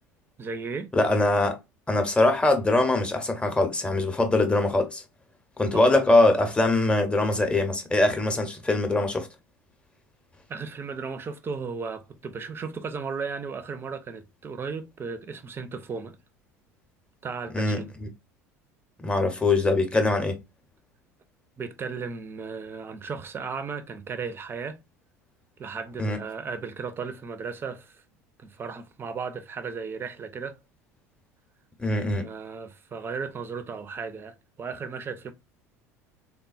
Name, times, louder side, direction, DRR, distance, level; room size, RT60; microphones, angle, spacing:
voice 1, 0.4-0.9 5.7-5.9 10.5-16.2 17.2-17.9 21.6-24.8 25.6-28.0 28.4-30.6 32.2-35.3, right 5 dB, 25° right, 0.5 m, -35 dB
voice 2, 0.9-1.6 1.9-5.0 5.6-9.3 17.5-18.1 19.0-20.4 26.0-26.2 31.8-32.3, left 2 dB, 10° left, 0.8 m, -22 dB
3.5 x 2.2 x 2.4 m
figure-of-eight pair, 70°, 8 cm